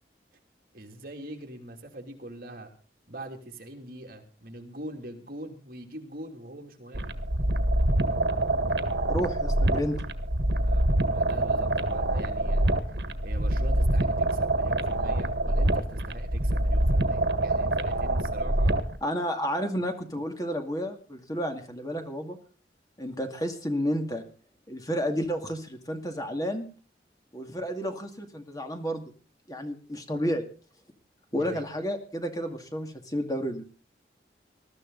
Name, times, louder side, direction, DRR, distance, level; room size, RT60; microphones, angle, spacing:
voice 1, 0.7-2.7 3.1-7.1 10.6-12.6 13.2-18.8 31.3-31.6, right 1 dB, 55° right, 4 dB, 2.9 m, -43 dB
sound 1, 6.9-19.0, right 1 dB, 80° right, 1.6 m, -25 dB
voice 2, 9.1-10.0 19.0-22.4 23.0-24.2 24.7-26.7 27.3-29.0 29.5-30.5 31.3-33.7, equal, 20° left, 5 dB, 2.3 m, -31 dB
21.0 x 13.0 x 4.0 m, 0.37 s
head